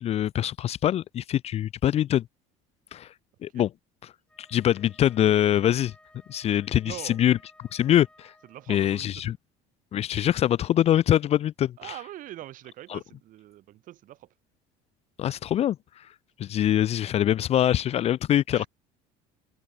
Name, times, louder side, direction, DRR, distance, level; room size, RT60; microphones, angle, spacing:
voice 1, 0.0-2.2 2.9-3.1 3.4-3.7 4.4-5.9 6.3-8.3 8.7-9.4 9.9-12.0 12.9-13.0 15.2-16.0 16.4-18.7, left 11 dB, 40° left, 0.5 m, -24 dB
Wind instrument woodwind instrument, 4.2-8.8, left 1 dB, 5° left, 5.4 m, -58 dB
voice 2, 6.8-7.2 8.5-9.3 11.8-14.3 18.5-18.7, right 14 dB, 55° right, 3.6 m, -43 dB
open air
cardioid pair, 120°, 16 cm